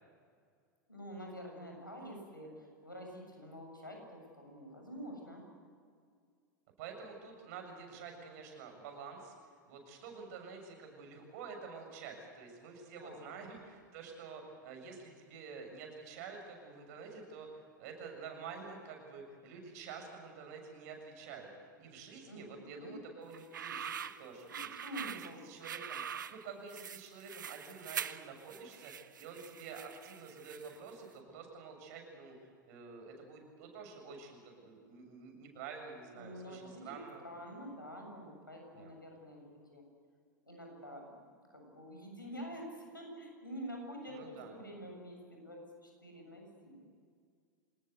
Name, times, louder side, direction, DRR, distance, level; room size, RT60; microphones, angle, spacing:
voice 1, 0.9-5.4 13.0-13.3 22.3-23.0 24.5-25.5 36.1-39.8 40.5-41.2 41.5-46.9, equal, 90° left, 2 dB, 7.2 m, -47 dB
voice 2, 6.8-9.3 9.7-21.5 21.8-24.7 25.1-26.0 26.3-28.9 29.2-32.4 32.7-37.2 38.7-38.9 44.1-44.6, right 5 dB, 50° right, 3 dB, 7.3 m, -49 dB
sound 1, 23.3-30.9, right 8 dB, 70° right, 1.0 m, -44 dB
26.5 x 20.0 x 8.2 m, 2.1 s
figure-of-eight pair, 90°, 11 cm